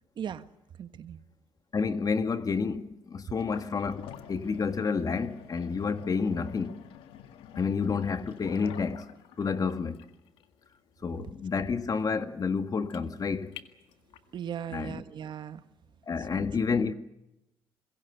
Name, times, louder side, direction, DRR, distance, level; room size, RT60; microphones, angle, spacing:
voice 1, 0.2-0.5 0.8-1.2 14.3-15.6 16.2-16.4, right 8 dB, 55° right, 1.4 m, -38 dB
voice 2, 1.7-6.8 7.5-9.1 9.4-10.0 11.0-13.5 14.7-15.0 16.1-16.9, left 5 dB, 40° left, 1.8 m, -30 dB
sound 1, 3.3-14.4, left 10 dB, 80° left, 1.9 m, -49 dB
26.5 x 22.5 x 6.9 m
supercardioid pair, 75°, 9 cm